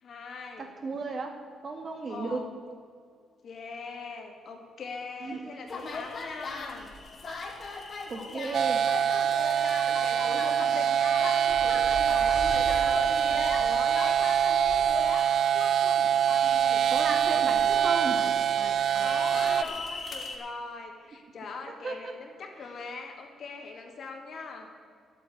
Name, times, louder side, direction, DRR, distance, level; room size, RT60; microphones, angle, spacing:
voice 1, 0.0-0.8 2.0-2.5 3.4-6.9 9.8-14.2 19.0-24.7, left 4 dB, 60° left, 2 dB, 2.4 m, -41 dB
voice 2, 0.6-2.5 5.2-5.5 8.0-8.8 16.9-18.2 21.8-22.1, right 3 dB, 45° right, 4 dB, 1.9 m, -34 dB
sound 1, 5.7-20.4, left 3 dB, 40° left, 2.3 m, -38 dB
sound 2, 8.5-19.6, right 9 dB, 60° right, 0.4 m, -24 dB
11.0 x 8.6 x 9.4 m, 2.1 s
cardioid pair, 105°, 0 cm